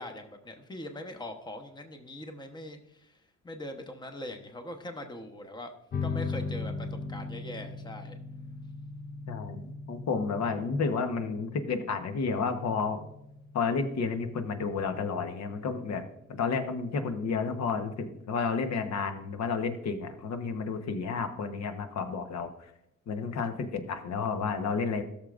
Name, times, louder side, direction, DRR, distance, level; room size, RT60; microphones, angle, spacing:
voice 1, 0.0-5.7 6.0-8.1, left 1 dB, 15° left, 5 dB, 1.0 m, -42 dB
sound 1, 5.9-16.9, left 4 dB, 30° left, 0.5 m, -39 dB
voice 2, 9.3-13.0 13.5-16.0 16.3-22.5 23.1-25.0, left 5 dB, 60° left, 8 dB, 1.1 m, -31 dB
14.0 x 6.6 x 2.5 m, 0.82 s
cardioid pair, 90°, 30 cm